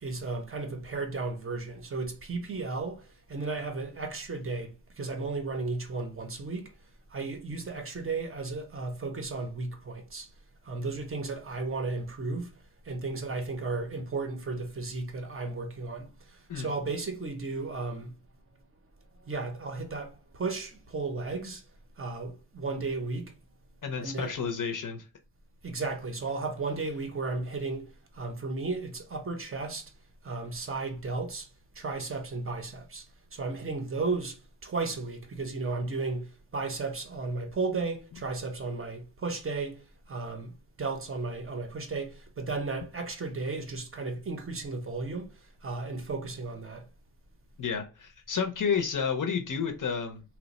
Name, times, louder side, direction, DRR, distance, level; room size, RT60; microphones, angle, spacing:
voice 1, 0.0-6.7 7.1-10.3 10.7-12.5 12.9-16.1 16.6-18.1 19.3-21.6 22.0-23.3 24.0-24.3 25.6-27.9 28.1-29.9 30.2-31.5 31.8-33.0 33.3-34.4 34.6-39.8 40.1-45.3 45.6-46.9, right 3 dB, 30° right, 0.6 m, -34 dB
voice 2, 23.8-25.1 47.6-50.2, left 6 dB, 50° left, 0.5 m, -31 dB
2.9 x 2.0 x 4.0 m
wide cardioid pair, 165°, 41 cm